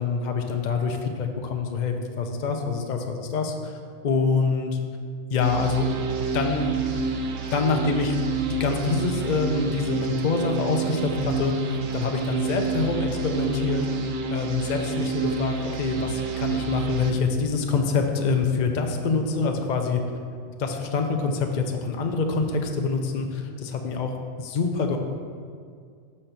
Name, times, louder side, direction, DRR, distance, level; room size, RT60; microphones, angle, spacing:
voice 1, 0.0-4.8 5.3-5.9 6.3-6.7 7.5-13.9 14.3-20.0 20.6-24.1 24.4-25.0, left 4 dB, 50° left, 3 dB, 0.6 m, -26 dB
sound 1, 5.4-17.1, right 5 dB, 65° right, 0.5 m, -28 dB
6.6 x 4.3 x 5.8 m, 2.2 s
omnidirectional pair, 1.4 m